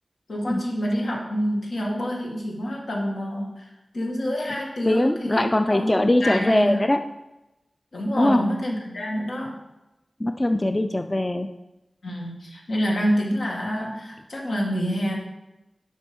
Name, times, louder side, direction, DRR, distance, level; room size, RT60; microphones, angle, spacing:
voice 1, 0.3-6.9 7.9-9.6 12.0-15.2, equal, 85° left, -2 dB, 2.0 m, -27 dB
voice 2, 4.9-7.0 8.2-8.4 10.2-11.5, left 1 dB, 25° left, 7 dB, 0.4 m, -21 dB
7.2 x 5.4 x 5.3 m, 0.96 s
wide cardioid pair, 55°, 0 cm